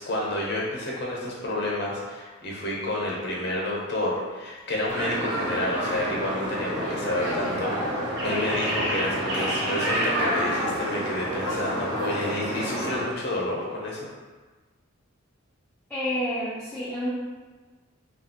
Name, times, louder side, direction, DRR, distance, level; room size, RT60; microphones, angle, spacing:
voice 1, 0.0-7.7 8.2-14.1, left 1 dB, 55° left, -3 dB, 0.7 m, -29 dB
sound 1, 4.9-13.0, equal, 60° right, 0.7 m, -28 dB
voice 2, 15.9-17.1, equal, 5° left, -10 dB, 0.4 m, -29 dB
2.9 x 2.3 x 2.8 m, 1.3 s
head